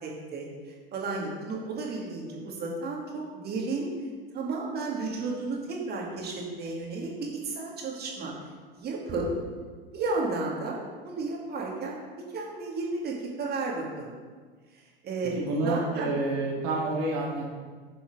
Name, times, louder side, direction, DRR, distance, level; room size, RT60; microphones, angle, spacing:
voice 1, 0.0-3.9 4.3-8.3 8.7-9.3 9.9-12.0 12.3-14.1 15.0-15.3 15.6-16.1, right 3 dB, 30° right, -2 dB, 2.4 m, -33 dB
voice 2, 15.4-17.4, right 2 dB, 50° right, -3 dB, 1.9 m, -28 dB
11.0 x 6.9 x 3.9 m, 1.5 s
figure-of-eight pair, 80°, 31 cm